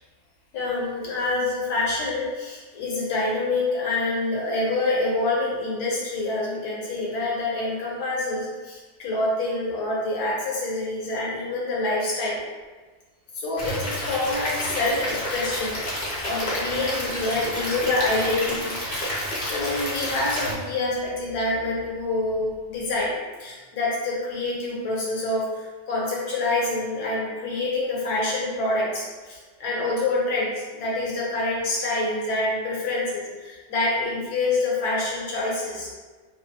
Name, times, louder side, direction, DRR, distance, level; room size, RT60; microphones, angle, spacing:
voice 1, 0.5-12.4 13.3-23.1 23.4-36.0, left 2 dB, 85° left, -5 dB, 1.4 m, -26 dB
Stream / Liquid, 13.6-20.5, left 1 dB, 45° left, 0.6 m, -30 dB
3.0 x 2.2 x 2.7 m, 1.3 s
omnidirectional pair, 1.6 m